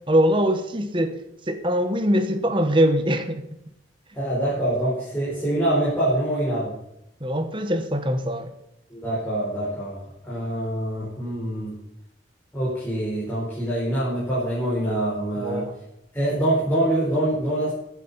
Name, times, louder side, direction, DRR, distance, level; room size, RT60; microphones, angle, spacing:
voice 1, 0.1-1.2 1.5-3.5 7.2-8.5 15.4-15.7, equal, 30° right, 7 dB, 1.2 m, -22 dB
voice 2, 4.1-6.7 8.9-11.7 12.5-15.6 16.1-17.7, right 1 dB, 10° left, -9 dB, 4.8 m, -25 dB
15.0 x 8.4 x 5.7 m, 0.80 s
head